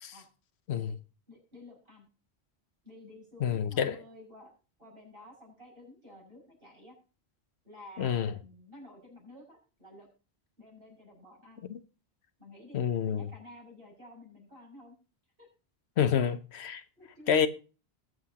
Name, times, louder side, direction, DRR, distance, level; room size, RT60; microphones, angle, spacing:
voice 1, 1.3-2.1 2.8-4.5 4.8-6.9 7.6-10.1 10.6-11.6 12.4-14.9 15.4-15.5 17.0-17.5, left 1 dB, 60° right, 6.4 m, -52 dB
voice 2, 3.4-4.0 8.0-8.3 11.7-11.8 12.7-13.3 16.0-16.8 17.3-17.5, left 8 dB, 90° left, 1.1 m, -28 dB
20.5 x 7.9 x 2.8 m
omnidirectional pair, 1.1 m